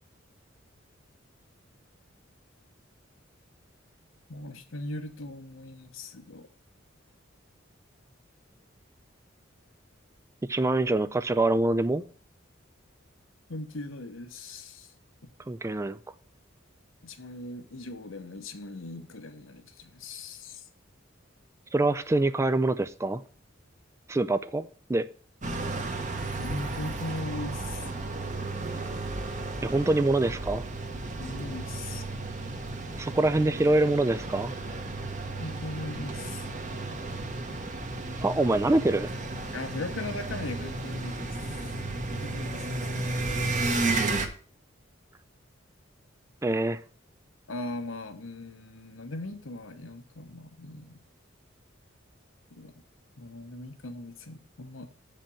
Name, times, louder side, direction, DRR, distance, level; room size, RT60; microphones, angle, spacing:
voice 1, 4.3-6.5 13.5-14.9 15.2-15.3 17.0-20.7 26.4-27.9 31.2-32.0 35.4-36.5 39.5-41.4 42.0-43.9 47.5-51.0 52.5-52.7 53.2-54.9, left 2 dB, 85° left, 7 dB, 1.1 m, -39 dB
voice 2, 10.5-12.0 15.5-16.0 21.7-23.2 24.1-25.0 29.6-30.6 33.0-34.5 38.2-39.1 46.4-46.8, right 2 dB, 15° right, 14 dB, 0.4 m, -25 dB
sound 1, 25.4-44.3, right 2 dB, 40° right, 1.1 m, -33 dB
7.4 x 5.3 x 7.0 m, 0.42 s
head